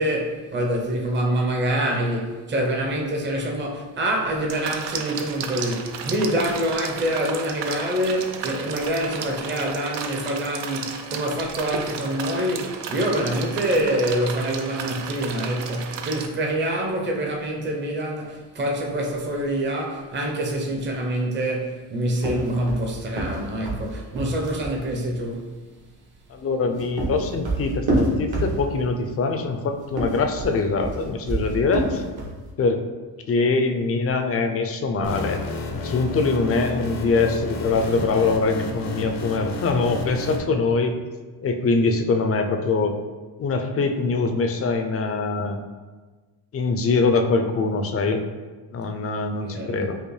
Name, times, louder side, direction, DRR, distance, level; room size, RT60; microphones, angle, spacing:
voice 1, 0.0-25.5 49.4-49.9, right 1 dB, 25° right, 0.7 m, -26 dB
sound 1, 4.5-16.3, right 6 dB, 75° right, 0.5 m, -33 dB
sound 2, 22.2-24.8 26.5-28.9 29.8-32.4, right 1 dB, 60° right, 1.2 m, -27 dB
voice 2, 26.3-32.0 32.6-32.8 33.3-35.4 35.7-40.9 41.4-42.9 43.4-45.6 46.5-48.2 48.7-50.0, left 3 dB, 35° left, 0.4 m, -23 dB
sound 3, 35.0-40.4, left 2 dB, 85° left, 0.7 m, -32 dB
5.3 x 2.0 x 3.1 m
cardioid pair, 90°, 42 cm